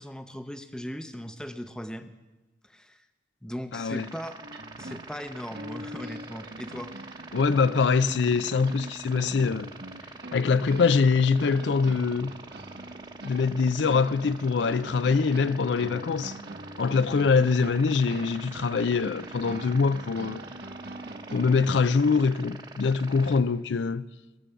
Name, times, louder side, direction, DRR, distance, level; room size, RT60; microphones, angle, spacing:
voice 1, 0.0-2.1 2.6-3.0 3.4-4.4 4.8-6.9, equal, 5° left, 0.6 m, -38 dB
voice 2, 3.7-4.1 7.3-9.7 10.3-12.3 13.2-16.3 16.8-20.4 21.3-24.0, left 5 dB, 80° left, 0.5 m, -24 dB
sound 1, 3.9-23.4, right 3 dB, 25° right, 0.9 m, -45 dB
sound 2, 4.4-22.0, right 1 dB, 60° right, 1.0 m, -43 dB
21.5 x 7.6 x 6.9 m
head